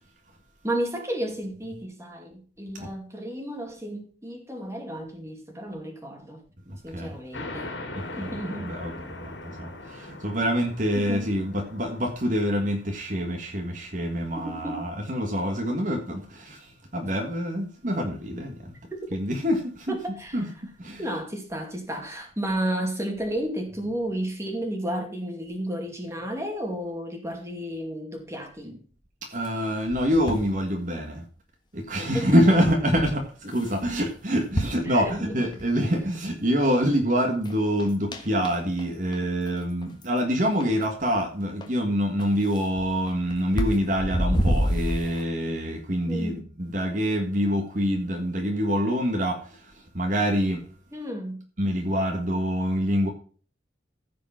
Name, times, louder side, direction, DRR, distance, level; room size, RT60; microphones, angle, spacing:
voice 1, 0.6-6.4 6.8-7.7 8.2-8.7 10.9-11.3 14.4-14.8 18.9-19.1 19.9-20.4 21.0-28.8 32.1-32.3 34.9-35.4 46.1-46.4 50.9-51.4, right 1 dB, 15° right, 2.4 m, -32 dB
voice 2, 6.7-7.2 7.9-18.7 19.1-20.0 20.3-20.5 20.8-21.0 29.3-31.2 31.7-50.7 51.6-53.1, equal, 45° right, 1.6 m, -26 dB
sound 1, 7.3-14.5, left 2 dB, 85° left, 2.6 m, -41 dB
sound 2, 29.4-30.6 32.2-32.3 32.6-33.2 33.5-33.9 34.4-35.7 36.1-36.2 36.8-36.9 37.2-37.5 37.8-38.9 39.1-39.2 39.5-39.6 39.8-40.3 40.6-40.7 41.1-41.2 41.6-41.7 42.2-45.2, equal, 25° left, 1.5 m, -28 dB
15.0 x 5.2 x 5.8 m
head